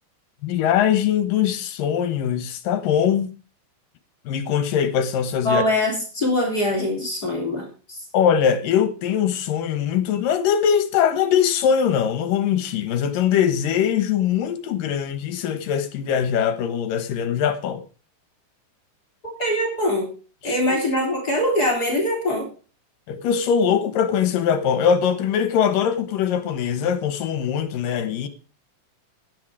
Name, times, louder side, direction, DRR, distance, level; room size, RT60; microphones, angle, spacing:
voice 1, 0.4-3.3 4.3-5.6 8.1-17.8 20.4-20.8 23.1-28.3, left 8 dB, 80° left, 3.0 m, -22 dB
voice 2, 5.4-8.0 19.2-20.1 20.4-22.5, left 1 dB, 25° left, 3.9 m, -23 dB
12.0 x 10.5 x 4.9 m
omnidirectional pair, 3.9 m